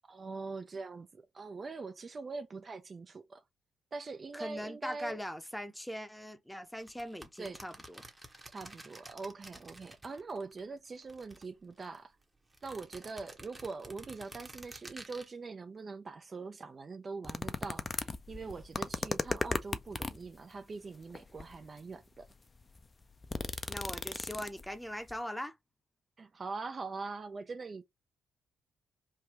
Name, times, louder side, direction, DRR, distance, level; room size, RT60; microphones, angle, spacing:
voice 1, 0.1-3.4 3.9-5.2 7.4-7.6 8.5-12.2 12.6-22.3 26.2-27.8, right 4 dB, 40° right, 0.5 m, -43 dB
voice 2, 4.3-8.0 23.7-25.5, equal, 5° left, 0.7 m, -41 dB
sound 1, 6.8-10.6 10.9-12.0 12.5-15.3, right 1 dB, 20° right, 0.9 m, -51 dB
sound 2, 17.2-20.3 21.1-21.6 22.2-22.3 22.6-24.8 25.1-25.2, left 3 dB, 35° left, 0.4 m, -36 dB
3.3 x 2.1 x 2.9 m
hypercardioid pair, 45°, 0 cm